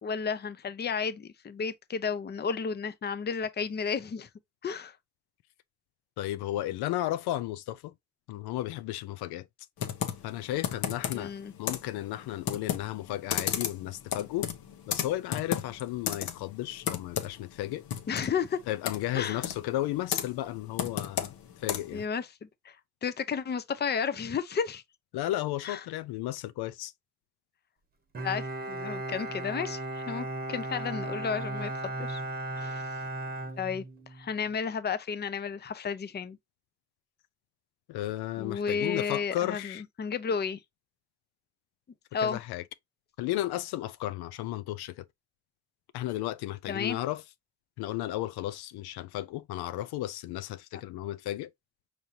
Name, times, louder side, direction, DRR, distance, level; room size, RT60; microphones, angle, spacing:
voice 1, 0.0-4.3 4.6-5.0 11.1-11.5 18.1-18.6 19.1-19.4 21.9-22.8 23.0-24.8 25.6-25.8 28.2-32.2 32.6-32.8 33.6-33.8 34.1-36.4 38.4-40.6 42.1-42.4 46.7-47.0, left 6 dB, 25° left, 0.6 m, -32 dB
voice 2, 6.2-7.9 8.3-9.5 10.2-11.3 11.6-14.5 14.9-17.8 18.7-22.0 25.1-26.9 37.9-39.8 42.2-42.6 43.2-45.1 45.9-47.2 47.8-51.5, left 14 dB, 80° left, 0.5 m, -34 dB
Computer keyboard, 9.8-22.1, left 9 dB, 65° left, 0.9 m, -35 dB
Bowed string instrument, 28.1-34.3, right 2 dB, 25° right, 1.0 m, -36 dB
5.4 x 3.1 x 2.7 m
cardioid pair, 100°, 38 cm